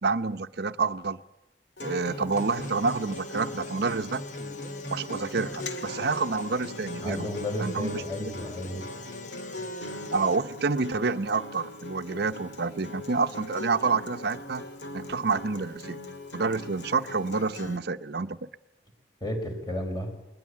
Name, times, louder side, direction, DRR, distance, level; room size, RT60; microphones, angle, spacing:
voice 1, 0.0-1.2 1.8-4.2 4.9-7.3 7.6-8.3 10.1-14.6 14.9-16.0 16.3-18.5, right 4 dB, 65° right, 12 dB, 0.8 m, -28 dB
Acoustic guitar, 1.8-17.8, left 2 dB, 80° left, 2.0 m, -40 dB
sound 1, 2.4-10.4, left 2 dB, 45° left, 1.2 m, -43 dB
voice 2, 7.0-8.8 19.2-20.1, equal, 25° left, 4 dB, 4.9 m, -32 dB
21.0 x 20.5 x 8.5 m, 0.92 s
head